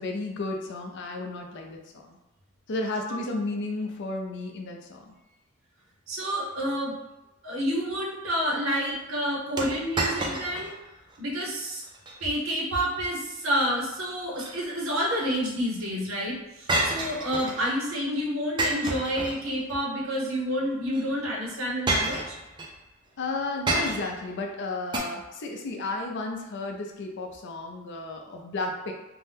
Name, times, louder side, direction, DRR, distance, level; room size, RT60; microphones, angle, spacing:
voice 1, 0.0-1.8 2.1-2.2 2.7-5.1 23.2-28.9, left 2 dB, 60° left, 2 dB, 0.4 m, -33 dB
voice 2, 6.1-7.0 7.4-10.7 11.2-11.8 12.2-22.4, equal, 70° right, -3 dB, 0.7 m, -29 dB
sound 1, 9.6-10.7 11.1-11.2 11.8-12.2 14.1-15.0 16.7-17.7 18.6-19.7 20.9-21.0 21.9-22.7 23.7-24.3 24.9-25.0, right 2 dB, 20° right, 0.4 m, -29 dB
2.6 x 2.1 x 3.3 m, 0.98 s
head